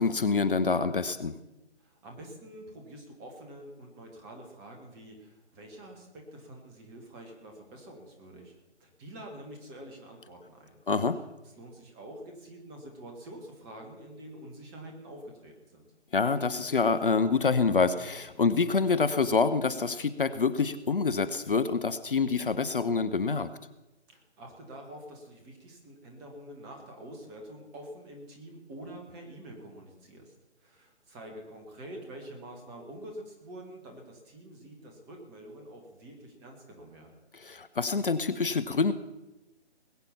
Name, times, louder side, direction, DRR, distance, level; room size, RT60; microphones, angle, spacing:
voice 1, 0.0-1.3 10.9-11.2 16.1-23.5 37.3-38.9, left 4 dB, 50° left, 13 dB, 0.8 m, -26 dB
voice 2, 1.8-8.5 8.8-10.8 11.5-15.9 24.1-37.2, right 1 dB, 10° right, 3 dB, 1.2 m, -47 dB
20.5 x 8.8 x 5.6 m, 1.0 s
figure-of-eight pair, 145°, 34 cm